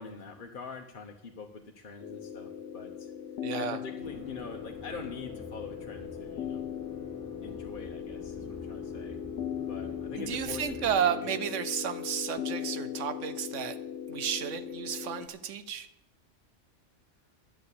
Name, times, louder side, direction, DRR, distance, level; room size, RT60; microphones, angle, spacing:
voice 1, 0.0-3.1 3.5-6.9 7.4-9.2 9.7-11.3, left 4 dB, 45° left, 2 dB, 1.2 m, -44 dB
sound 1, 2.0-15.3, left 8 dB, 70° left, 1.0 m, -39 dB
voice 2, 3.4-3.8 10.2-13.8 14.1-15.9, right 8 dB, 85° right, 11 dB, 1.1 m, -32 dB
sound 2, 4.0-10.9, left 1 dB, 5° left, 2.9 m, -49 dB
11.5 x 7.7 x 8.3 m, 0.79 s
omnidirectional pair, 1.2 m